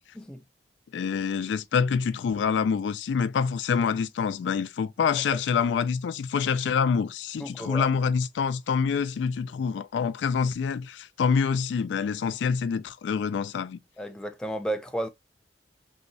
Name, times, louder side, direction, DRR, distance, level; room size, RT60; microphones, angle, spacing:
voice 1, 0.9-13.8, left 6 dB, 85° left, 0.3 m, -26 dB
voice 2, 7.4-7.9 14.0-15.1, right 1 dB, 5° left, 0.3 m, -32 dB
3.0 x 2.7 x 2.6 m
head